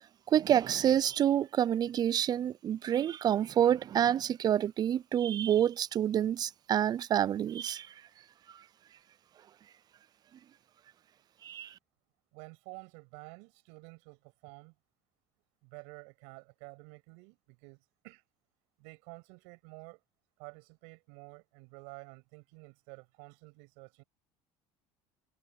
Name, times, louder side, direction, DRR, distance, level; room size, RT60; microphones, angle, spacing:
voice 1, 0.3-7.9 11.4-11.7, right 10 dB, 35° right, 0.4 m, -28 dB
voice 2, 12.3-14.7 15.6-18.2 18.8-20.0 20.4-24.0, right 33 dB, 85° right, 7.4 m, -51 dB
cardioid pair, 115°, 12 cm